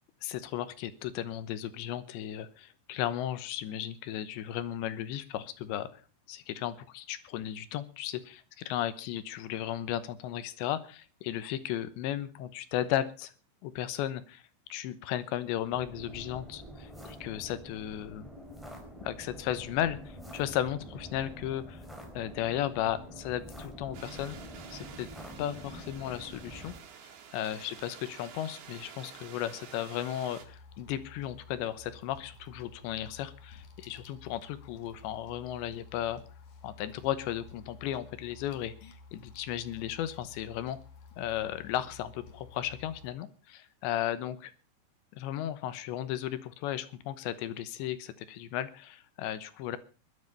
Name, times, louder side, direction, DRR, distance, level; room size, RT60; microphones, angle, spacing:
voice 1, 0.2-6.0 6.3-13.3 13.6-14.4 14.7-18.3 19.0-21.8 22.2-24.4 24.7-25.1 25.4-26.7 27.3-36.2 36.6-40.8 41.2-44.5 45.1-49.8, left 12 dB, 80° left, 14 dB, 3.2 m, -35 dB
sound 1, 15.7-26.8, equal, ahead, 3.5 m, -46 dB
sound 2, 23.9-30.5, right 7 dB, 90° right, 4.7 m, -50 dB
sound 3, 30.4-43.1, left 4 dB, 50° left, 2.8 m, -52 dB
17.5 x 12.0 x 5.3 m, 0.36 s
omnidirectional pair, 5.2 m